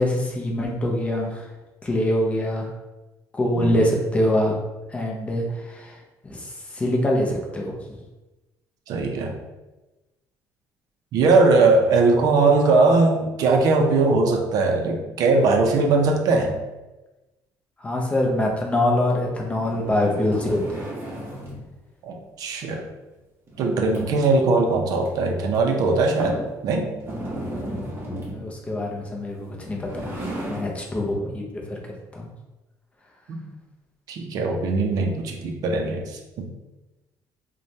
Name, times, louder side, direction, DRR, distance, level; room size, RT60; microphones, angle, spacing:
voice 1, 0.0-1.4 1.8-2.7 3.3-4.5 4.9-6.0 6.2-7.8 17.8-20.8 28.2-31.8 32.1-32.3, left 1 dB, 15° left, -1 dB, 0.4 m, -24 dB
voice 2, 8.9-9.4 11.1-16.5 22.0-22.8 23.6-26.4 26.6-26.9 33.3-33.4 34.1-36.5, right 3 dB, 60° right, 2 dB, 0.4 m, -20 dB
sound 1, 19.5-21.7 23.5-24.3 25.0-25.1 25.5-25.6 26.2-26.5 27.0-28.5 29.5-30.8, right 1 dB, 30° right, 0.7 m, -34 dB
3.0 x 2.1 x 2.6 m, 1.1 s
cardioid pair, 140°, 7 cm